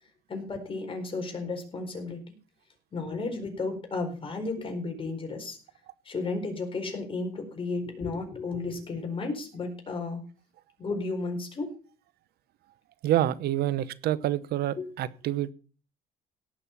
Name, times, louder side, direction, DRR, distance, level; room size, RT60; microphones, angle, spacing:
voice 1, 0.3-2.3 2.9-5.6 6.0-10.3 10.8-11.7 14.8-14.9, left 3 dB, 30° left, 4 dB, 4.5 m, -33 dB
voice 2, 13.0-15.5, right 13 dB, 70° right, 18 dB, 0.9 m, -27 dB
17.5 x 6.7 x 5.8 m, 0.38 s
cardioid pair, 110°, 17 cm